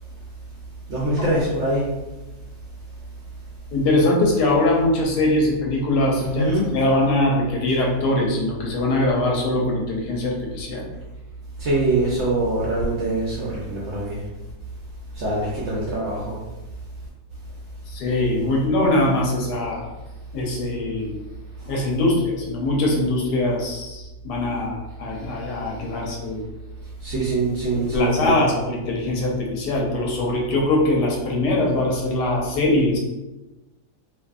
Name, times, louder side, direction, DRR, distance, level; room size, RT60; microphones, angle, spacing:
voice 1, 0.9-1.9 6.2-6.7 11.6-14.2 15.1-16.4 27.0-28.5, right 2 dB, 65° right, -5 dB, 0.7 m, -23 dB
voice 2, 3.7-10.9 17.9-19.9 20.3-21.2 21.6-26.4 27.8-33.0, left 2 dB, 90° left, -1 dB, 1.2 m, -22 dB
2.6 x 2.6 x 2.3 m, 1.0 s
omnidirectional pair, 1.7 m